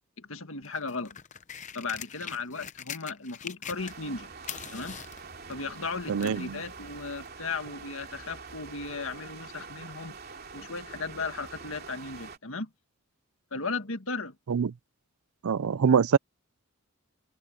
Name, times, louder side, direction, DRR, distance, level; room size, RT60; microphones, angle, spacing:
voice 1, 0.2-1.2 1.7-4.3 4.7-5.0 5.5-10.2 10.5-12.7 13.5-14.4, left 4 dB, 70° left, 1.8 m, -36 dB
sound 1, 0.6-4.2 4.4-6.4 7.3-7.4, left 8 dB, 35° left, 0.7 m, -42 dB
sound 2, 3.8-12.4, right 5 dB, 45° right, 3.1 m, -45 dB
voice 2, 6.1-6.6 14.5-14.7 15.4-16.2, right 6 dB, 85° right, 0.5 m, -24 dB
head